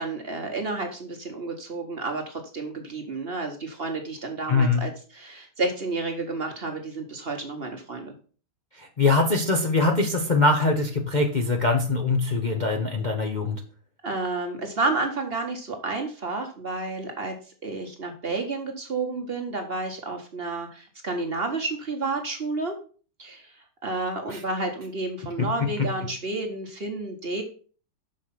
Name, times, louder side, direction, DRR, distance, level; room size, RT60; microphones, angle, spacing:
voice 1, 0.0-8.1 14.0-17.3 17.6-22.8 23.2-27.4, right 3 dB, 40° right, 4 dB, 1.2 m, -31 dB
voice 2, 4.5-4.8 9.0-13.6 24.3-24.4 25.4-25.5, left 3 dB, 40° left, 2 dB, 0.7 m, -22 dB
6.5 x 4.8 x 5.8 m, 0.40 s
omnidirectional pair, 1.8 m